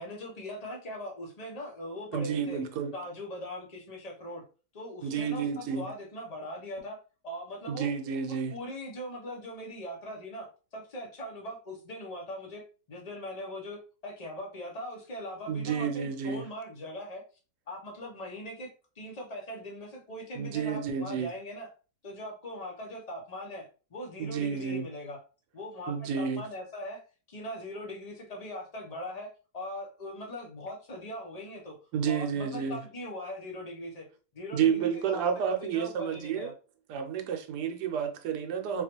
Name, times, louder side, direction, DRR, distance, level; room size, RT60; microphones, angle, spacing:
voice 1, 0.0-2.6 2.9-4.4 4.7-7.0 7.2-7.9 8.3-17.2 17.7-21.7 22.0-25.2 25.5-27.0 27.3-31.8 32.1-34.1 34.3-36.5, left 1 dB, 35° left, 0.6 m, -41 dB
voice 2, 2.1-2.9 5.0-5.9 7.7-8.6 15.5-16.5 20.3-21.3 24.2-24.9 25.9-26.5 31.9-32.8 34.5-36.5 36.9-38.8, right 7 dB, 85° right, 1.2 m, -30 dB
3.9 x 2.4 x 2.9 m
omnidirectional pair, 1.7 m